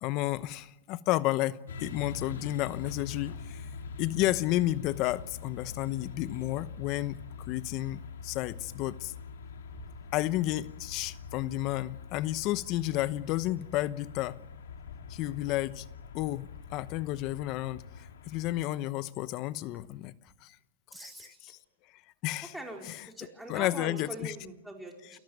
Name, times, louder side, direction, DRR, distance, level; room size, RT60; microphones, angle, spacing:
voice 1, 0.0-3.7 4.0-7.2 7.5-9.1 10.1-14.4 15.1-15.9 16.1-20.1 20.4-20.5 21.0-21.6 22.2-22.6 22.8-23.1 23.5-24.3 25.0-25.2, left 16 dB, 40° left, 0.9 m, -32 dB
sound 1, 1.7-18.6, left 5 dB, 90° left, 3.2 m, -44 dB
voice 2, 20.9-21.5 22.5-25.2, right 1 dB, ahead, 4.6 m, -43 dB
29.5 x 14.0 x 9.5 m
supercardioid pair, 140°, 0 cm